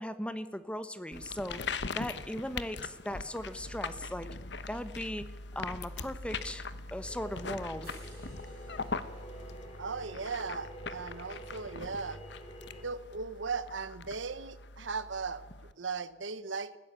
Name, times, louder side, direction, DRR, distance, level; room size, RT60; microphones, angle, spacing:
voice 1, 0.0-1.6 1.9-4.3 4.7-5.3 5.5-7.9, left 1 dB, 5° left, 12 dB, 1.0 m, -38 dB
sound 1, 1.1-15.7, left 4 dB, 65° left, 1.1 m, -41 dB
sound 2, 7.0-12.8, equal, 30° left, 3.3 m, -48 dB
sound 3, 7.8-12.0 13.3-13.4, right 8 dB, 55° right, 4.5 m, -63 dB
voice 2, 9.8-12.2 12.7-16.8, right 4 dB, 85° right, 15 dB, 1.1 m, -38 dB
21.0 x 16.0 x 8.3 m, 1.2 s
head